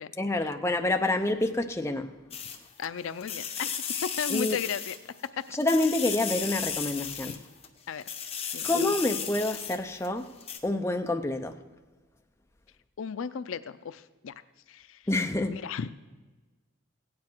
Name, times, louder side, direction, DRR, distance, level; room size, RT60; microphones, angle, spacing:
voice 1, 0.2-2.1 4.3-4.6 5.5-7.4 8.6-10.3 10.6-11.6 15.1-15.6, left 2 dB, 10° left, 4 dB, 0.6 m, -27 dB
sound 1, 2.3-2.9 3.2-5.3 5.6-7.7 8.0-10.1 10.4-10.6, left 8 dB, 30° left, 1.0 m, -34 dB
voice 2, 2.8-3.7 4.2-5.0 5.4-5.5 7.9-8.0 8.5-8.7 13.0-14.3 14.7-15.0 15.5-15.9, left 7 dB, 75° left, 14 dB, 0.4 m, -35 dB
16.0 x 9.6 x 4.5 m, 1.2 s
head